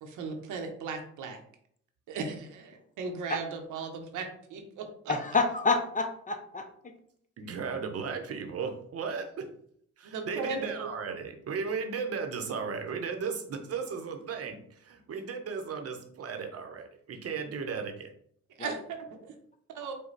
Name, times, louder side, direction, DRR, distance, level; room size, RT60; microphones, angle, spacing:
voice 1, 0.0-1.4 2.1-5.1 10.1-10.9 18.6-19.3 19.7-20.0, right 4 dB, 80° right, 4 dB, 0.9 m, -37 dB
voice 2, 5.1-6.9 18.6-18.7, left 3 dB, 25° left, 6 dB, 0.6 m, -28 dB
voice 3, 7.4-9.5 10.0-18.1, right 5 dB, 50° right, 4 dB, 0.8 m, -35 dB
5.2 x 2.2 x 4.0 m, 0.65 s
cardioid pair, 90°, 30 cm